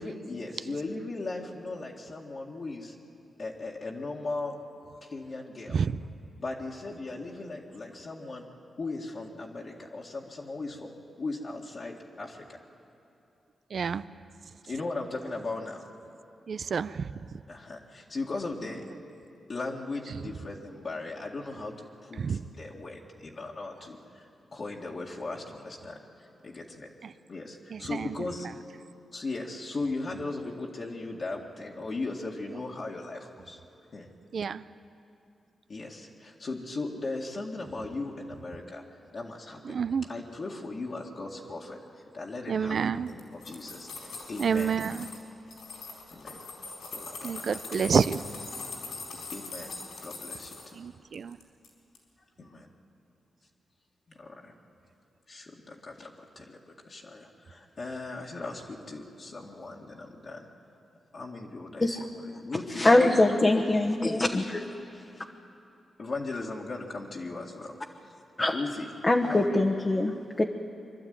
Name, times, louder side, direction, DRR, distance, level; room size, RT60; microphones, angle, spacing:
voice 1, 0.0-3.0 3.4-4.6 5.0-5.8 6.4-8.5 8.8-10.9 11.2-12.6 14.6-15.8 17.5-18.9 19.5-24.3 24.5-26.0 26.4-26.9 27.3-28.5 29.1-33.6 33.9-34.1 35.7-38.8 39.1-39.8 40.1-44.7 46.1-46.4 46.8-47.5 49.3-50.7 52.4-52.7 54.2-54.5 55.3-60.5 61.1-63.3 66.0-67.8 68.5-68.9 69.3-69.6, left 3 dB, 55° left, -3 dB, 2.1 m, -38 dB
voice 2, 5.7-6.0 13.7-14.0 16.5-17.3 20.1-20.2 22.2-22.5 27.0-27.1 27.7-28.2 34.3-34.6 39.6-40.1 42.5-43.1 44.4-45.1 47.2-48.2 50.7-51.4, right 6 dB, 65° right, 15 dB, 0.5 m, -29 dB
sound 1, 43.1-45.2 45.5-50.7 51.1-51.7 51.9-52.0, left 3 dB, 80° left, 4.5 m, -42 dB
voice 3, 62.7-64.6 68.4-68.5 69.0-70.4, left 2 dB, 30° left, 1 dB, 1.2 m, -23 dB
24.5 x 12.0 x 9.5 m, 2.7 s
cardioid pair, 55°, 0 cm